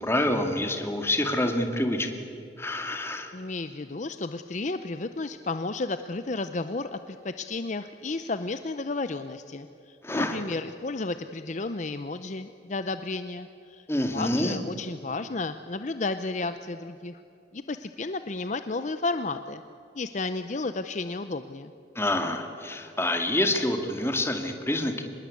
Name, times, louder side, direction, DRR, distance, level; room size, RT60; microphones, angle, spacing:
voice 1, 0.0-2.1 2.6-3.3 10.0-10.4 13.9-14.6 22.0-25.0, left 1 dB, 15° left, 5 dB, 2.1 m, -27 dB
voice 2, 3.3-13.9 14.1-17.2 17.5-19.6 19.9-21.7, left 3 dB, 40° left, 10 dB, 0.7 m, -32 dB
25.5 x 20.5 x 8.5 m, 2.6 s
head